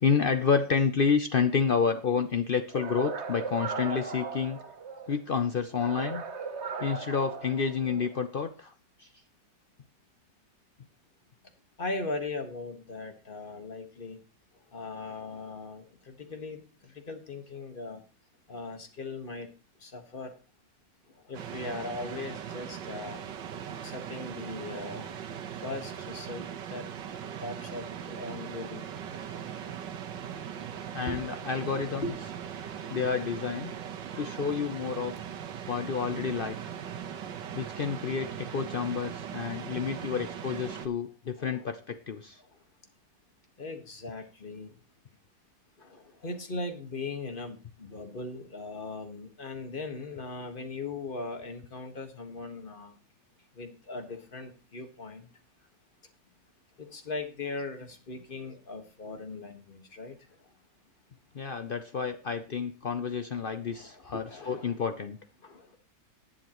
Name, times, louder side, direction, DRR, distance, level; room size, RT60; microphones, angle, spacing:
voice 1, 0.0-4.6 5.1-6.2 6.8-8.7 9.0-9.1 30.9-32.0 32.9-33.7 34.2-35.1 35.7-36.6 37.5-42.4 61.3-65.2, left 6 dB, 80° left, 8 dB, 0.4 m, -29 dB
sound 1, 2.7-5.1 5.7-8.2, right 5 dB, 45° right, 1.3 m, -37 dB
voice 2, 11.8-14.2 14.7-16.6 17.1-18.0 18.5-19.5 19.8-20.3 21.3-23.2 23.8-25.2 25.6-26.8 27.4-28.8 31.1-31.2 32.0-32.1 36.1-36.6 39.4-39.6 39.9-40.2 41.4-41.7 43.6-44.7 45.8-53.0 53.6-55.3 56.8-60.1 63.7-64.8 65.4-65.8, left 3 dB, 30° left, 6 dB, 1.6 m, -39 dB
sound 2, 21.3-40.9, right 9 dB, 85° right, 1.7 m, -40 dB
19.0 x 7.5 x 3.0 m, 0.34 s
omnidirectional pair, 1.9 m